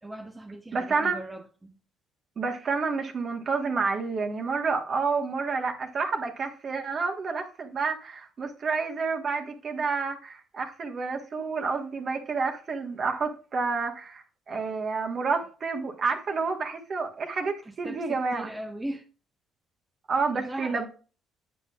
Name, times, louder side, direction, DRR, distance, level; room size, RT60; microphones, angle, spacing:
voice 1, 0.0-1.8 17.7-19.0 20.3-20.8, right 1 dB, 15° right, 0.9 m, -38 dB
voice 2, 0.7-1.2 2.4-18.5 20.1-20.9, right 4 dB, 45° right, 1.5 m, -29 dB
8.4 x 7.7 x 2.4 m
cardioid pair, 95°, 0 cm